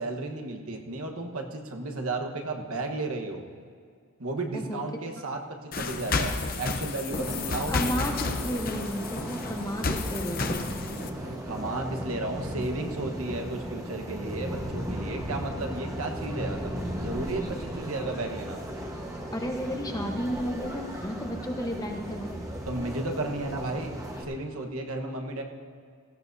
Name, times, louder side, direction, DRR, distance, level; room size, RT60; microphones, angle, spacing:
voice 1, 0.0-3.4 4.2-7.9 11.2-16.7 17.0-18.6 22.7-23.9 24.2-25.4, right 2 dB, 75° right, 3 dB, 1.2 m, -33 dB
sound 1, 5.7-11.1, left 3 dB, 40° left, 0.7 m, -31 dB
sound 2, 7.1-24.2, equal, 15° right, 1.2 m, -36 dB
voice 2, 7.2-8.1 8.4-10.7 19.3-22.3, equal, 15° left, 2 dB, 0.9 m, -33 dB
17.5 x 15.0 x 2.7 m, 2.2 s
head